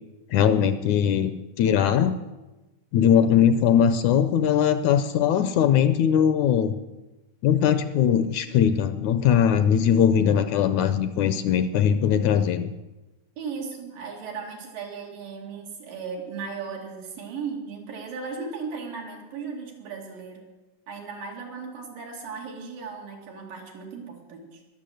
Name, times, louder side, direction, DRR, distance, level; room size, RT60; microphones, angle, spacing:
voice 1, 0.3-1.3 1.6-2.1 2.9-6.7 7.4-12.7, left 8 dB, 75° left, 11 dB, 1.8 m, -20 dB
voice 2, 13.4-20.4 20.9-24.6, right 5 dB, 90° right, 0 dB, 4.1 m, -36 dB
20.5 x 7.2 x 7.7 m, 1.1 s
omnidirectional pair, 3.8 m